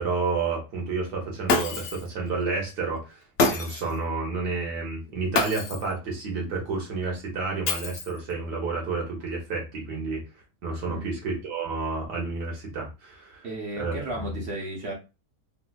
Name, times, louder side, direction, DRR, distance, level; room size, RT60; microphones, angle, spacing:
voice 1, 0.0-3.2 3.5-10.2 10.6-13.5 13.8-14.4, right 4 dB, 75° right, -1 dB, 1.8 m, -30 dB
Shatter, 1.5-2.1 3.4-4.0 5.3-5.9 7.7-8.3, left 3 dB, 80° left, 0.5 m, -26 dB
voice 2, 13.4-14.9, right 1 dB, 50° right, -1 dB, 1.0 m, -34 dB
3.9 x 2.7 x 2.2 m, 0.28 s
omnidirectional pair, 1.8 m